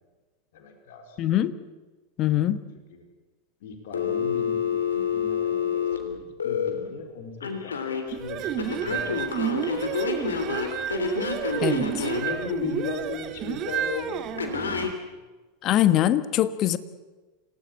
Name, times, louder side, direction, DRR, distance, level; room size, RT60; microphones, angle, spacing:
voice 1, 0.5-1.2 2.9-3.1 3.6-10.2 12.1-14.4, left 4 dB, 55° left, 4 dB, 4.3 m, -37 dB
voice 2, 1.2-1.5 2.2-2.6 11.6-12.1 15.6-16.8, left 12 dB, 40° left, 14 dB, 1.2 m, -23 dB
Telephone, 3.9-6.7 7.4-8.0 8.6-12.3 14.4-14.9, left 6 dB, 70° left, 3.3 m, -28 dB
sound 1, 8.1-14.9, right 10 dB, 40° right, 1.6 m, -30 dB
27.5 x 18.0 x 8.6 m, 1.2 s
figure-of-eight pair, 85°, 0 cm